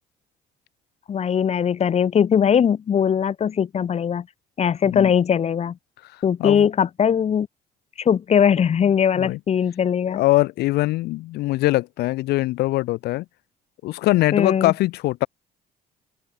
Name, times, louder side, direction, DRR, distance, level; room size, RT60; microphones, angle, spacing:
voice 1, 1.1-4.3 4.6-5.8 6.2-7.5 8.0-10.2 14.3-14.7, left 8 dB, 40° left, 1.2 m, -20 dB
voice 2, 10.1-13.2 13.8-15.3, left 18 dB, 75° left, 0.5 m, -22 dB
open air
cardioid pair, 110°, 17 cm